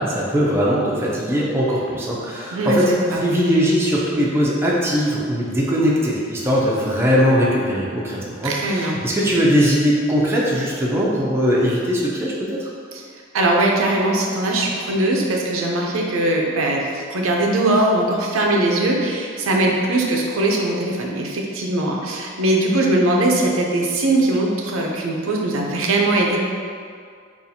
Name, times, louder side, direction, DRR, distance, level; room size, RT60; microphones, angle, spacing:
voice 1, 0.0-12.3 12.6-12.7, equal, 10° right, -5 dB, 0.4 m, -20 dB
voice 2, 2.5-3.2 8.4-9.0 12.9-13.0 13.3-26.4, right 2 dB, 85° right, -1 dB, 0.5 m, -20 dB
4.0 x 2.4 x 2.6 m, 2.1 s
head